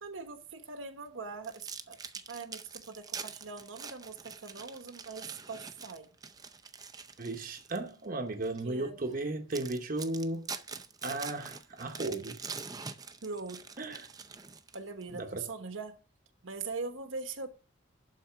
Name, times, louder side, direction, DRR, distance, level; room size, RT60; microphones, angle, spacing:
voice 1, 0.0-2.0 2.3-6.1 8.6-9.0 13.2-13.6 14.7-16.0 16.4-17.5, right 4 dB, 80° right, 1.2 m, -41 dB
sound 1, 1.4-7.9 8.4-8.6 9.1-9.2 9.5-15.0, right 5 dB, 20° right, 0.5 m, -44 dB
voice 2, 7.2-10.5 11.0-12.4 13.8-14.1 15.1-15.5, right 2 dB, 45° right, 0.9 m, -35 dB
11.5 x 4.1 x 5.8 m
head